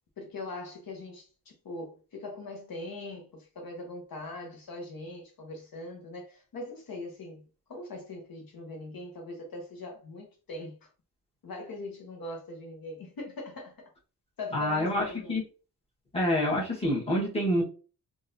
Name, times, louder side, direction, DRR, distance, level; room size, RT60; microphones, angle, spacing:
voice 1, 0.2-10.9 11.4-13.9 14.4-15.4, left 2 dB, 65° left, 1.0 m, -41 dB
voice 2, 14.5-15.4 16.1-17.6, left 1 dB, 15° left, 1.3 m, -27 dB
3.8 x 2.5 x 2.6 m
wide cardioid pair, 135°, 39 cm